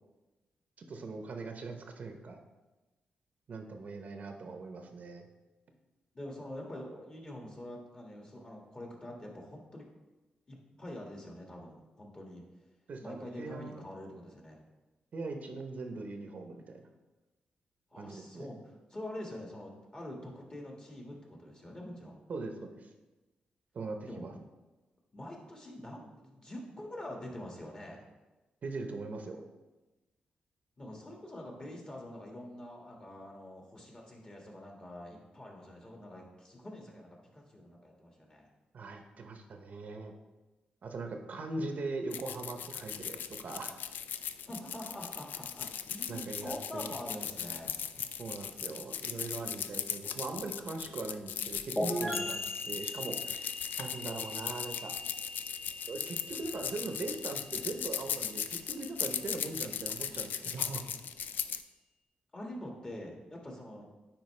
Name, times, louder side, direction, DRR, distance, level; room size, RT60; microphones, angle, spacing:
voice 1, 0.8-2.4 3.5-5.2 12.9-13.8 15.1-16.9 18.0-18.5 22.3-22.9 23.7-24.3 28.6-29.5 38.7-40.1 40.8-43.8 46.1-46.9 48.2-52.4 52.7-53.5 53.8-54.9 55.9-60.8, right 3 dB, 55° right, 4 dB, 0.7 m, -40 dB
voice 2, 6.1-9.9 10.5-12.4 13.0-14.6 17.9-22.2 24.1-24.3 25.1-28.0 30.8-38.5 44.5-47.7 62.3-63.9, left 1 dB, 25° left, 0 dB, 1.7 m, -45 dB
sound 1, 42.1-61.6, left 8 dB, 85° left, 0.3 m, -38 dB
sound 2, 51.8-59.3, left 1 dB, 10° left, 1.2 m, -40 dB
9.2 x 4.4 x 3.2 m, 1.1 s
cardioid pair, 90°, 3 cm